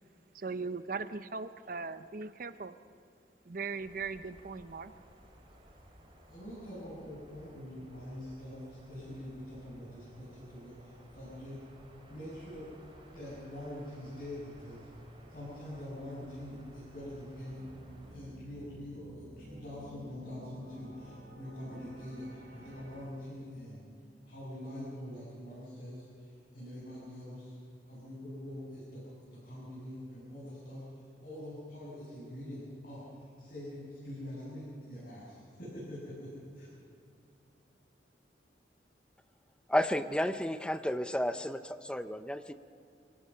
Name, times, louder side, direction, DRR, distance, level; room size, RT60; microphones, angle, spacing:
voice 1, 0.3-2.8 3.5-4.9, right 4 dB, 50° right, 12 dB, 0.7 m, -39 dB
sound 1, 3.8-18.2, equal, 30° right, 3.1 m, -57 dB
voice 2, 6.3-11.6 12.1-12.7 13.1-14.9 15.3-17.6 18.1-23.9 24.2-27.6 27.9-36.7, left 1 dB, 55° left, -9 dB, 7.3 m, -44 dB
sound 2, 16.1-23.1, right 1 dB, 90° right, 5.1 m, -53 dB
voice 3, 39.7-42.5, left 1 dB, 5° left, 11 dB, 0.5 m, -32 dB
26.0 x 17.5 x 5.6 m, 2.4 s
head